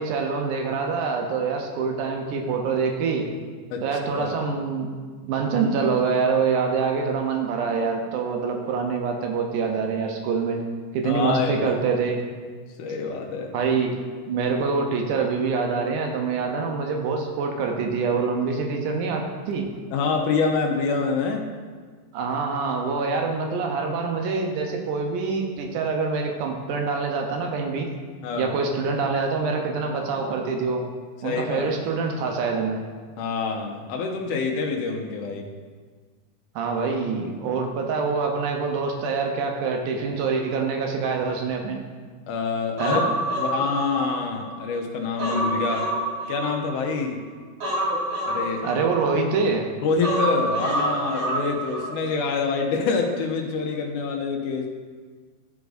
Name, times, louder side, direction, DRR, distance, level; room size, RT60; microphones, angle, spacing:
voice 1, 0.0-3.2 3.8-4.9 5.2-10.6 10.9-12.2 13.5-13.9 14.3-19.7 22.1-27.9 28.3-30.8 31.2-32.8 36.6-41.8 42.8-43.1 48.6-49.7, right 5 dB, 80° right, 2 dB, 2.3 m, -25 dB
voice 2, 11.0-11.7 12.8-13.5 19.9-21.5 28.2-28.5 31.2-31.7 33.2-35.5 42.3-43.1 43.4-45.9 46.3-47.3 48.3-48.7 49.8-54.7, left 4 dB, 85° left, 2 dB, 2.3 m, -26 dB
Human voice, 42.8-44.6 44.9-47.0 47.6-49.4 50.0-51.9 52.2-52.4, right 1 dB, 50° right, 1.6 m, -27 dB
13.0 x 4.7 x 2.6 m, 1.5 s
omnidirectional pair, 3.6 m